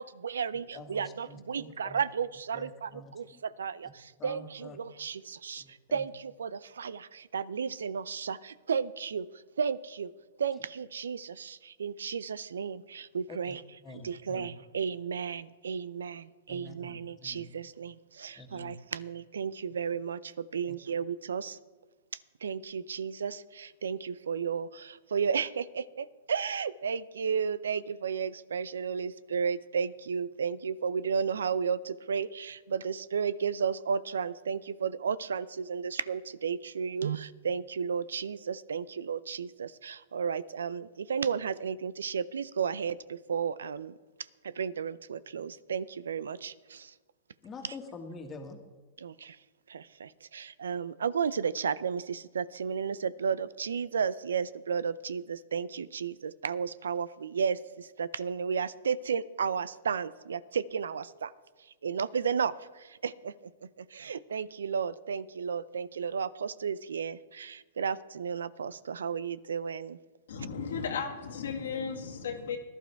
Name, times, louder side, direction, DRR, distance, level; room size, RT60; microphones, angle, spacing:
voice 1, 0.0-9.3 9.6-10.1 10.4-13.6 13.9-21.6 22.4-43.9 44.4-46.9 49.0-49.4 49.7-61.3 61.8-63.5 63.8-70.0, right 6 dB, 85° right, 19 dB, 0.5 m, -33 dB
voice 2, 0.7-2.0 2.5-3.0 3.3-3.4 4.2-4.8 5.6-6.0 13.3-13.5 13.8-14.5 16.5-17.5 18.4-18.7 20.7-20.8 47.4-48.6, left 3 dB, 25° left, 5 dB, 1.8 m, -46 dB
voice 3, 70.3-72.6, left 6 dB, 75° left, 3 dB, 1.9 m, -35 dB
16.5 x 11.5 x 3.4 m, 1.3 s
hypercardioid pair, 125°, 0 cm